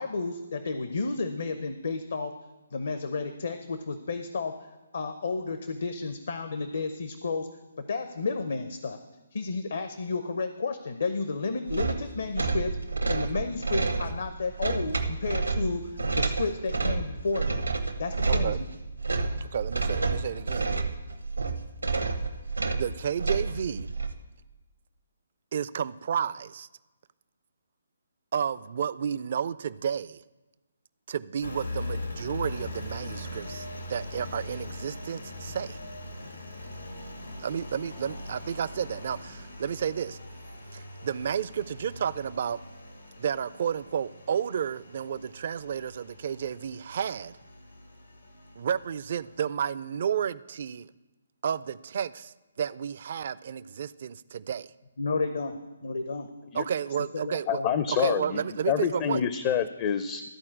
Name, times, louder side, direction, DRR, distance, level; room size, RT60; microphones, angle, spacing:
voice 1, 0.0-2.3 2.7-4.5 4.9-7.5 7.8-9.0 9.3-12.8 13.1-17.7 18.0-18.6 55.0-56.3 57.1-57.7, left 3 dB, 60° left, 9 dB, 0.7 m, -32 dB
sound 1, 11.7-24.1, right 3 dB, 85° right, 1.1 m, -29 dB
voice 2, 18.3-18.6 19.4-20.7 22.8-23.9 25.5-26.7 28.3-30.2 31.1-35.8 37.4-40.2 40.7-42.6 43.2-47.4 48.6-50.9 51.4-54.7 56.5-57.6 57.9-59.2, right 8 dB, 50° right, 17 dB, 0.4 m, -31 dB
Engine, 31.4-49.4, left 1 dB, 85° left, 1.7 m, -41 dB
voice 3, 57.5-58.4 58.7-60.2, left 8 dB, 30° left, 11 dB, 0.5 m, -27 dB
13.0 x 4.4 x 8.6 m, 1.2 s
figure-of-eight pair, 140°, 0 cm